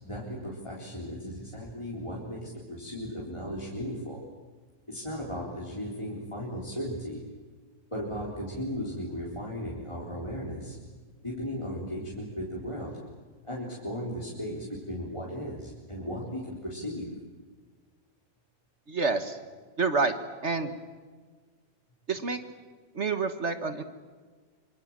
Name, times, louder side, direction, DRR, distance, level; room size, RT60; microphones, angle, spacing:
voice 1, 0.0-4.2 4.9-7.2 7.9-10.8 11.2-13.0 13.4-17.1, equal, 15° left, -3 dB, 4.0 m, -36 dB
voice 2, 18.9-19.4 19.8-20.1 20.4-20.7 22.1-22.4 22.9-23.8, right 4 dB, 45° right, 9 dB, 1.6 m, -28 dB
25.5 x 25.5 x 7.5 m, 1.5 s
omnidirectional pair, 1.8 m